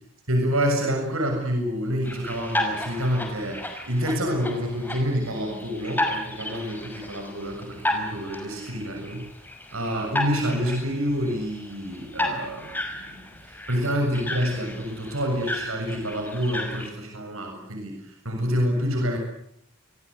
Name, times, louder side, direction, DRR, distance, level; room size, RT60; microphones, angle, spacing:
voice 1, 0.3-9.3 9.7-19.2, equal, 75° right, 2 dB, 7.3 m, -27 dB
sound 1, 2.0-16.9, left 1 dB, 10° left, 5.8 m, -33 dB
28.0 x 22.5 x 8.2 m, 0.71 s
head